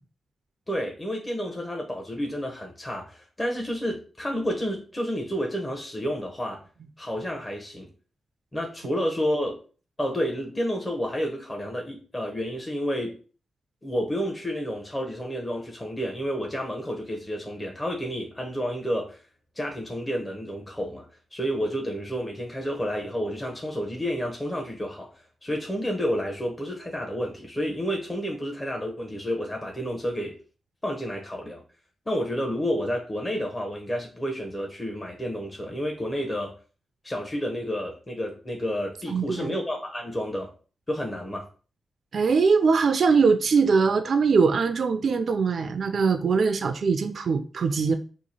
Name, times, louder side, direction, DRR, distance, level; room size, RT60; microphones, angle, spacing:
voice 1, 0.7-6.6 7.0-7.9 8.5-9.6 10.0-13.2 13.8-19.2 19.6-21.0 21.3-30.4 30.8-31.6 32.1-36.5 37.0-40.5 40.9-41.5, equal, 25° left, 0 dB, 0.8 m, -30 dB
voice 2, 39.1-39.5 42.1-47.9, right 5 dB, 65° right, 8 dB, 0.3 m, -22 dB
2.9 x 2.4 x 4.0 m, 0.38 s
cardioid pair, 60°, 0 cm